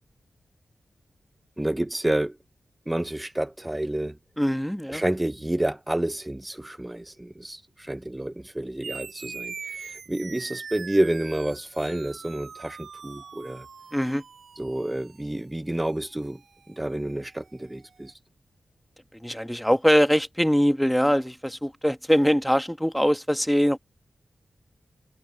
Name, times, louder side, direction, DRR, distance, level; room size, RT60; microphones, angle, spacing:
voice 1, 1.6-2.4 2.9-4.2 4.9-13.7 14.6-16.4 16.7-18.2, right 1 dB, 15° right, 0.4 m, -29 dB
voice 2, 4.4-5.0 13.9-14.2 19.2-23.8, equal, 5° left, 1.4 m, -22 dB
sound 1, 8.8-17.7, right 6 dB, 80° right, 6.7 m, -43 dB
cardioid pair, 65°, 0 cm